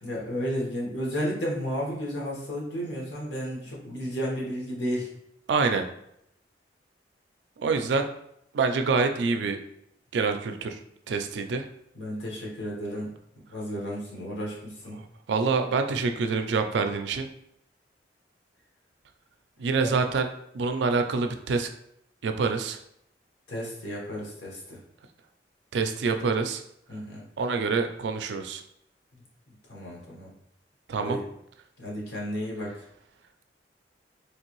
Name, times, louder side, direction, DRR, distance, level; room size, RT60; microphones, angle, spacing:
voice 1, 0.0-5.1 7.8-7.9 11.9-13.1 13.5-15.0 19.8-20.0 23.5-24.8 26.9-27.2 29.7-30.3 31.0-31.2 31.8-32.7, equal, 85° left, -3 dB, 1.1 m, -33 dB
voice 2, 5.5-5.9 7.6-8.1 8.5-9.6 10.1-10.8 11.1-11.7 14.9-15.0 15.3-17.3 19.6-20.3 20.5-21.7 22.2-22.8 25.7-26.6 27.4-28.6 30.9-31.2, right 4 dB, 75° right, 7 dB, 0.4 m, -26 dB
3.2 x 2.6 x 2.9 m, 0.76 s
head